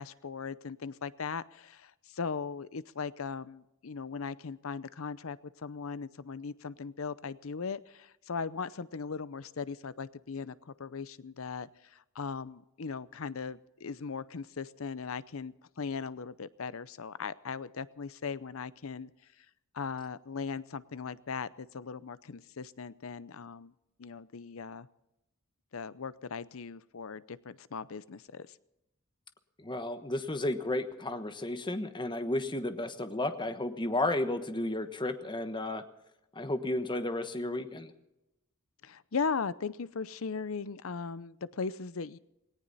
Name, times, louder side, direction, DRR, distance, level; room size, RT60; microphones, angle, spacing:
voice 1, 0.0-19.1 19.7-23.7 24.0-24.9 25.7-28.6 38.8-42.2, left 5 dB, 75° left, 17 dB, 0.7 m, -38 dB
voice 2, 29.6-35.8 36.3-37.9, left 1 dB, 25° left, 9 dB, 1.2 m, -33 dB
18.5 x 18.0 x 4.2 m, 0.88 s
head